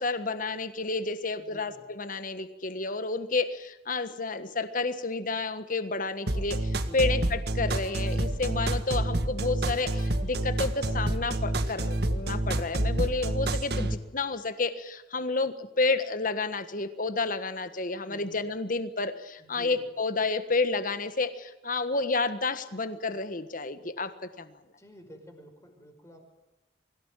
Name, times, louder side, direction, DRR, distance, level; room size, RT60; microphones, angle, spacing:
voice 1, 0.0-24.1 24.4-24.5, left 3 dB, 50° left, 11 dB, 1.5 m, -30 dB
voice 2, 1.4-1.8 6.8-7.1 18.0-18.4 19.4-19.9 24.8-26.3, equal, 15° left, 4 dB, 5.4 m, -50 dB
sound 1, 6.3-13.9, right 1 dB, 65° right, 1.7 m, -28 dB
24.0 x 17.0 x 9.1 m, 1.1 s
head